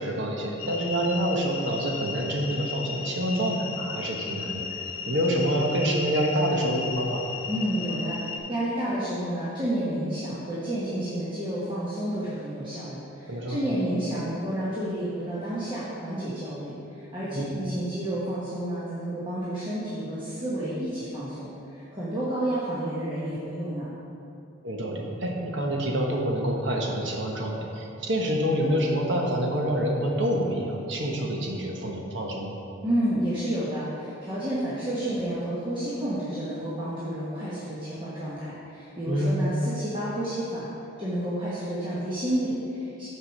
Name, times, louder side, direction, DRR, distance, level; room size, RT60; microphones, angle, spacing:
voice 1, 0.0-7.3 13.3-13.6 17.3-17.4 24.6-32.6 39.1-39.4, equal, 60° right, 0 dB, 1.1 m, -27 dB
sound 1, 0.6-8.4, left 6 dB, 90° left, 0.7 m, -35 dB
voice 2, 7.5-23.9 32.8-40.7 41.0-43.1, right 1 dB, 25° right, -9 dB, 1.1 m, -30 dB
6.3 x 4.8 x 6.4 m, 2.7 s
head